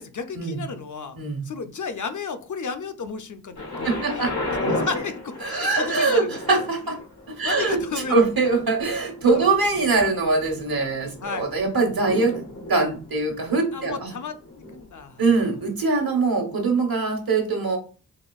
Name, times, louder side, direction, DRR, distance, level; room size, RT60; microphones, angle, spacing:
voice 1, 0.0-1.2 1.4-6.4 7.4-8.3 9.3-9.5 11.2-11.5 13.7-15.3, left 5 dB, 55° left, 8 dB, 0.5 m, -33 dB
Thunder, 3.5-15.4 16.2-16.3, left 1 dB, 90° left, 1.2 m, -35 dB
voice 2, 3.8-4.3 5.4-7.0 7.3-7.8 8.1-12.4 12.7-14.1 15.2-17.8, right 3 dB, 70° right, 3 dB, 1.1 m, -22 dB
4.1 x 2.5 x 2.3 m, 0.36 s
cardioid pair, 40°, 36 cm